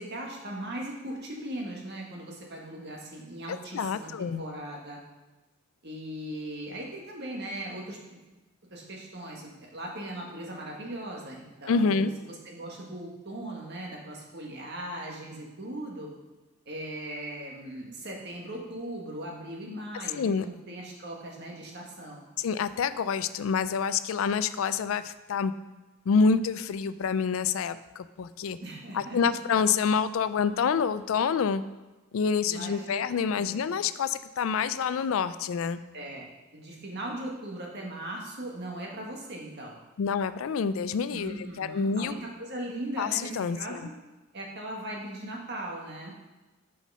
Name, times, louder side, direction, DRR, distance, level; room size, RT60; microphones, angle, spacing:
voice 1, 0.0-5.0 5.8-8.2 8.7-16.1 16.6-22.2 28.6-29.4 32.5-33.0 33.3-33.6 35.9-36.3 36.5-39.7 41.1-43.9 44.3-46.1, right 1 dB, 55° right, -1 dB, 1.6 m, -39 dB
voice 2, 3.5-4.4 11.7-12.1 20.2-20.5 22.4-25.5 26.1-28.6 28.9-31.6 32.1-35.8 40.0-42.2 43.0-43.8, left 5 dB, 70° left, 14 dB, 0.4 m, -27 dB
6.0 x 5.7 x 5.6 m, 1.1 s
head